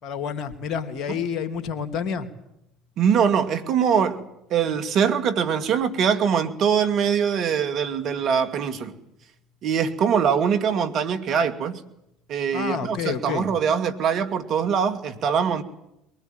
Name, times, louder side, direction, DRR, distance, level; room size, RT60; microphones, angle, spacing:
voice 1, 0.0-2.3 12.5-13.5, left 7 dB, 50° left, 3.0 m, -29 dB
voice 2, 3.0-4.2 4.5-8.9 9.6-11.8 12.3-15.6, right 7 dB, 55° right, 2.4 m, -23 dB
22.5 x 18.5 x 9.3 m
hypercardioid pair, 70°, 0 cm